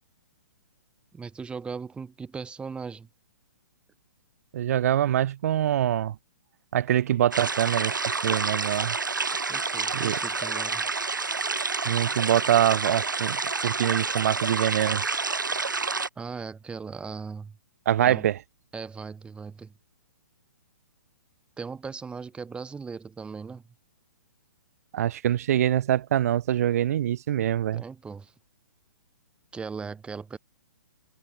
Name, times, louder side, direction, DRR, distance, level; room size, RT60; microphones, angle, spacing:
voice 1, 1.1-3.1 9.5-10.9 16.2-17.6 18.0-18.3 18.7-19.7 21.6-23.6 27.7-28.3 29.5-30.4, right 5 dB, 10° right, 3.3 m, -38 dB
voice 2, 4.5-6.1 6.7-8.0 8.2-9.0 9.9-10.2 11.8-15.0 17.9-18.4 24.9-27.8, right 11 dB, 50° right, 1.2 m, -24 dB
sound 1, 7.3-16.1, right 4 dB, 85° right, 1.2 m, -29 dB
figure-of-eight pair, 125°, 10 cm